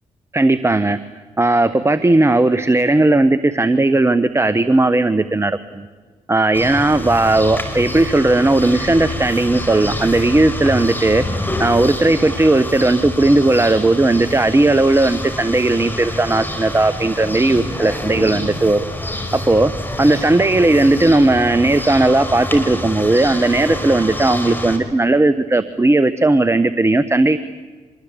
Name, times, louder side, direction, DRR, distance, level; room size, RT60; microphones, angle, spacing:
voice 1, 0.3-1.0 1.4-5.9 6.3-11.3 11.6-18.8 19.3-19.7 20.0-27.4, right 2 dB, 20° right, 13 dB, 1.2 m, -16 dB
sound 1, 6.5-24.8, left 1 dB, 15° left, 5.6 m, -27 dB
25.0 x 21.0 x 8.6 m, 1.4 s
supercardioid pair, 50°, 13 cm